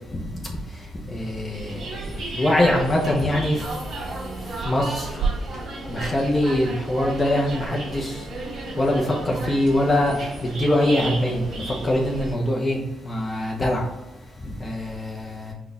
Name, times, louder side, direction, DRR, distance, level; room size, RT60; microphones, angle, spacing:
voice 1, 1.1-1.8 2.3-3.6 4.6-5.1 5.9-8.2 8.8-11.4 11.7-12.8 13.0-13.9 14.6-15.5, left 1 dB, 30° left, -2 dB, 0.7 m, -23 dB
sound 1, 1.5-12.3, right 3 dB, 55° right, 1.3 m, -32 dB
4.0 x 2.3 x 4.0 m, 1.1 s
cardioid pair, 90°, 0 cm